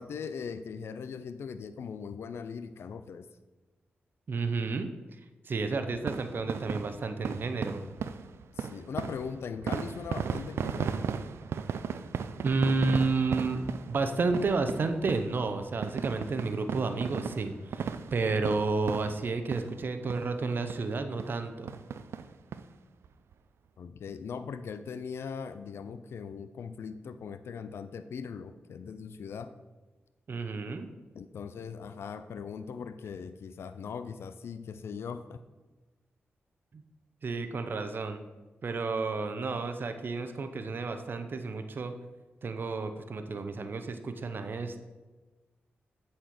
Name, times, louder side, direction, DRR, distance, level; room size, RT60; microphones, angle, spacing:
voice 1, 0.0-3.3 8.6-11.1 23.8-29.5 31.1-35.4, left 6 dB, 75° left, 10 dB, 0.4 m, -40 dB
voice 2, 4.3-4.9 5.4-7.8 12.4-13.6 13.9-21.7 30.3-30.9 36.7-36.8 37.2-38.2 38.6-41.9 42.4-44.8, right 3 dB, 55° right, 7 dB, 0.7 m, -31 dB
sound 1, 6.0-19.8 20.1-20.3 20.7-20.8 21.2-21.4 21.7-22.6 23.0-23.1 23.3-23.4, right 6 dB, 80° right, 0.4 m, -36 dB
8.1 x 4.4 x 6.0 m, 1.2 s
cardioid pair, 75°, 4 cm